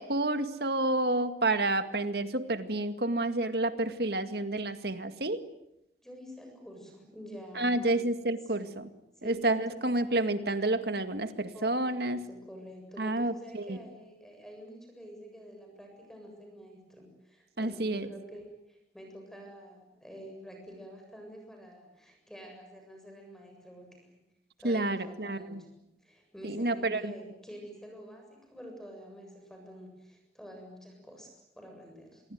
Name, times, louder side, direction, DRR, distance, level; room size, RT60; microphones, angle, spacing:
voice 1, 0.0-5.4 7.5-8.8 9.2-12.3 13.0-13.8 17.6-18.1 24.6-25.6 26.4-27.1, right 2 dB, 65° right, 10 dB, 2.1 m, -29 dB
voice 2, 6.0-8.0 8.5-8.7 9.2-9.6 11.5-24.2 24.6-25.7 26.0-32.2, equal, 5° left, 3 dB, 7.6 m, -48 dB
27.5 x 23.0 x 9.5 m, 0.85 s
head